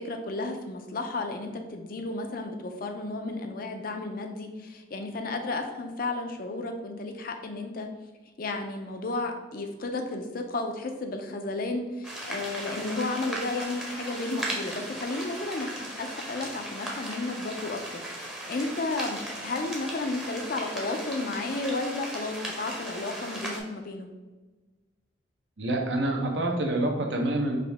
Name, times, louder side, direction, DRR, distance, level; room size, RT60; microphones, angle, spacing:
voice 1, 0.0-7.9 8.4-18.0 18.5-24.1, left 2 dB, 50° left, 4 dB, 0.5 m, -33 dB
sound 1, 12.0-23.6, right 1 dB, 5° right, 0.7 m, -37 dB
voice 2, 25.6-27.6, right 1 dB, 70° right, 2 dB, 0.8 m, -27 dB
4.9 x 2.7 x 3.4 m, 1.2 s
head